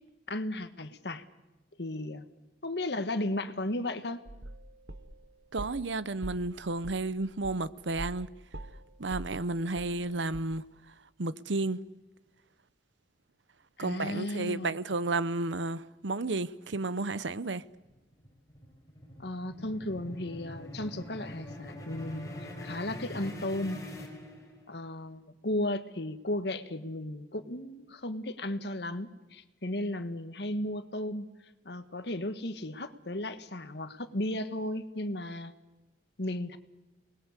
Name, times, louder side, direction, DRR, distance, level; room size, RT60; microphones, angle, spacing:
voice 1, 0.3-1.2 1.8-2.3 2.6-4.2 13.8-14.8 19.2-22.3 22.6-23.8 24.7-31.3 31.6-35.5 36.2-36.6, left 1 dB, 65° left, 1.6 m, -35 dB
sound 1, 4.3-5.9 6.2-8.3 8.5-10.1 10.3-10.4, right 1 dB, 70° right, 1.5 m, -43 dB
voice 2, 5.5-8.3 9.0-10.6 11.2-11.8 13.8-17.6, right 2 dB, 85° right, 0.9 m, -32 dB
sound 2, 17.6-24.9, left 1 dB, 20° left, 4.7 m, -44 dB
28.0 x 20.5 x 8.3 m
head